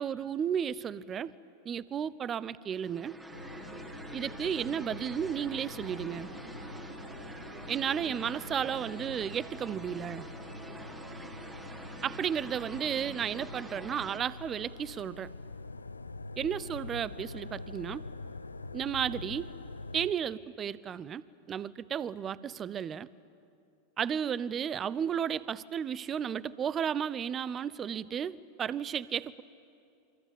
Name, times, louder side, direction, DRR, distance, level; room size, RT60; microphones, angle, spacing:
voice 1, 0.0-1.3 1.6-3.2 4.1-6.3 7.7-10.3 12.0-15.3 16.4-18.0 18.7-19.5 19.9-23.1 24.0-29.4, right 8 dB, 25° right, 20 dB, 0.7 m, -33 dB
sound 1, 2.8-14.2, right 2 dB, 10° right, 2.0 m, -46 dB
sound 2, 3.3-20.1, left 3 dB, 80° left, 0.6 m, -45 dB
26.0 x 25.0 x 7.2 m, 2.5 s
figure-of-eight pair, 85°, 0 cm